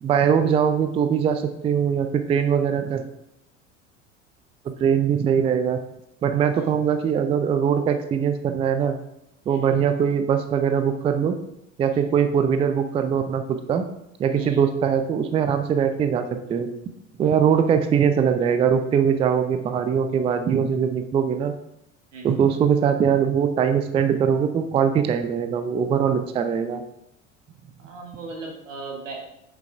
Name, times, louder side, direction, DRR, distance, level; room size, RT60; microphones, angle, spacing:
voice 1, 0.0-3.0 4.6-5.8 6.2-9.0 9.5-11.4 11.8-13.8 14.2-16.7 17.2-21.5 22.2-26.8, right 7 dB, 15° right, 9 dB, 0.4 m, -21 dB
voice 2, 27.8-29.3, right 3 dB, 75° right, 0 dB, 1.7 m, -37 dB
8.1 x 6.5 x 2.5 m, 0.82 s
figure-of-eight pair, 75°, 38 cm